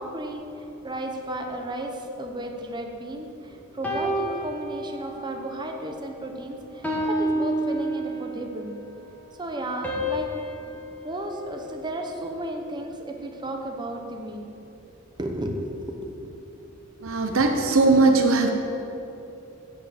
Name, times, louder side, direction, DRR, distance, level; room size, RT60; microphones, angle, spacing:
voice 1, 0.0-8.8 9.4-14.5 15.2-16.3, right 1 dB, 20° right, 2 dB, 1.0 m, -34 dB
sound 1, 3.8-5.4 5.9-6.2 6.8-8.5 9.8-12.2, right 1 dB, 10° left, 1.6 m, -30 dB
voice 2, 17.0-18.5, right 3 dB, 75° right, 4 dB, 0.9 m, -19 dB
8.3 x 7.3 x 7.2 m, 2.9 s
head